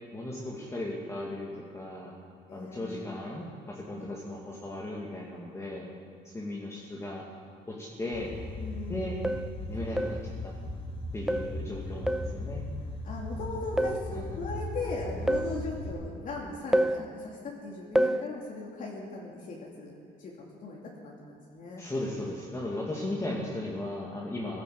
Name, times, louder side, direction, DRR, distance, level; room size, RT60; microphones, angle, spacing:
voice 1, 0.1-2.1 2.5-5.9 6.2-7.3 7.7-8.3 8.9-9.2 9.7-10.5 11.1-12.7 14.1-14.4 21.8-24.6, left 1 dB, 15° left, -4 dB, 2.1 m, -36 dB
voice 2, 2.5-3.0 3.9-4.1 8.6-9.1 13.0-19.9 20.2-21.8, left 3 dB, 50° left, -3 dB, 2.9 m, -38 dB
sound 1, 8.1-15.9, left 1 dB, 35° left, 2.5 m, -38 dB
sound 2, 8.2-8.3 9.2-9.6 10.0-10.3 11.3-11.6 12.1-12.4 13.8-14.1 15.3-15.6 16.7-17.0 18.0-18.3, right 1 dB, 5° right, 0.4 m, -27 dB
15.5 x 12.0 x 7.7 m, 2.2 s
cardioid pair, 110°, 17 cm